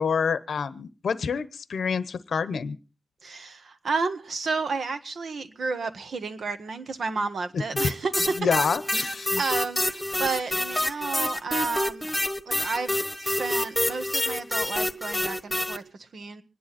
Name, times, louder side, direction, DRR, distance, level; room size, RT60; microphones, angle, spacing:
voice 1, 0.0-2.8 7.5-7.6 8.4-9.4, left 6 dB, 80° left, 0.8 m, -27 dB
voice 2, 3.2-8.1 9.4-12.1 12.5-16.4, right 4 dB, 65° right, 1.5 m, -31 dB
sound 1, 7.8-15.8, left 1 dB, 10° left, 1.4 m, -27 dB
25.5 x 10.5 x 4.2 m
wide cardioid pair, 120°, 0 cm